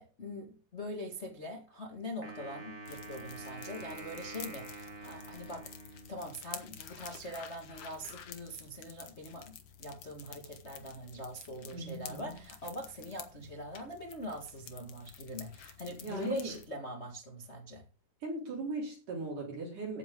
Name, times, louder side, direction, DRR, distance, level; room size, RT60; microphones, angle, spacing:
voice 1, 0.0-17.8, left 1 dB, 50° left, 0.7 m, -43 dB
Wind instrument woodwind instrument, 2.2-6.5, right 2 dB, 30° right, 1.2 m, -47 dB
sound 1, 2.8-16.7, left 8 dB, 90° left, 1.2 m, -50 dB
voice 2, 11.7-12.3 16.0-16.5 18.2-20.0, right 3 dB, 50° right, 6.0 m, -38 dB
15.5 x 8.5 x 3.9 m
omnidirectional pair, 4.8 m